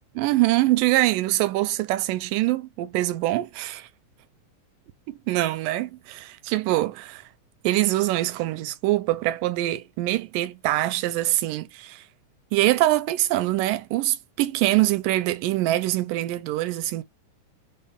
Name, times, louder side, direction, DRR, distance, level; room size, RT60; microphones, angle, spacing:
voice 1, 0.2-3.9 5.1-7.2 7.6-12.0 12.5-17.0, right 16 dB, 80° right, 2.1 m, -24 dB
5.4 x 2.1 x 3.4 m
omnidirectional pair, 4.1 m